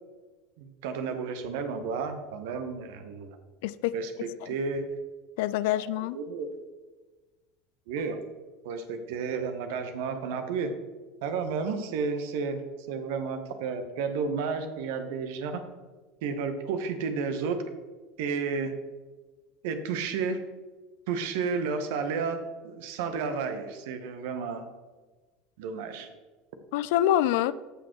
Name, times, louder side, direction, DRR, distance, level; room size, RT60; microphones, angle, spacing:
voice 1, 0.6-3.4 3.9-4.8 6.0-6.5 7.9-8.2 8.6-10.7 11.2-12.6 12.9-15.6 16.2-17.6 18.2-18.7 19.6-20.4 21.1-24.7 25.6-26.1, right 5 dB, 65° right, 7 dB, 1.0 m, -32 dB
voice 2, 3.6-3.9 4.4-4.6 5.4-6.2 26.7-27.5, left 12 dB, 65° left, 16 dB, 0.3 m, -26 dB
14.0 x 6.1 x 3.1 m, 1.3 s
figure-of-eight pair, 75°, 0 cm